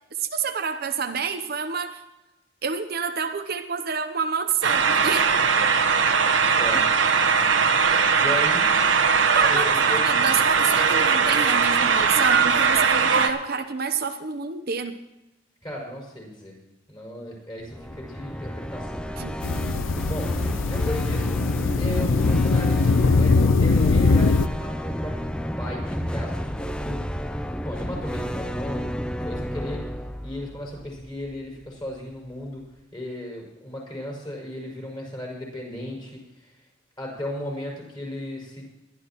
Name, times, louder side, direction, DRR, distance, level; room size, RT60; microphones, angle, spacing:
voice 1, 0.2-2.0 2.6-5.3 7.4-7.5 9.1-15.0 19.2-19.4, right 6 dB, 50° right, 6 dB, 0.9 m, -28 dB
sound 1, 4.6-13.3, right 5 dB, 70° right, 1.3 m, -20 dB
voice 2, 6.6-6.9 8.2-8.7 9.4-10.0 15.6-16.6 16.9-19.0 20.1-21.4 21.8-25.3 25.6-27.1 27.6-29.8 30.2-32.7 32.9-36.5 37.0-38.6, left 1 dB, 20° left, -3 dB, 6.1 m, -35 dB
sound 2, 17.6-31.6, equal, 5° left, 0.5 m, -32 dB
sound 3, 19.4-24.5, left 3 dB, 90° left, 0.6 m, -21 dB
22.0 x 12.5 x 3.1 m, 0.99 s
head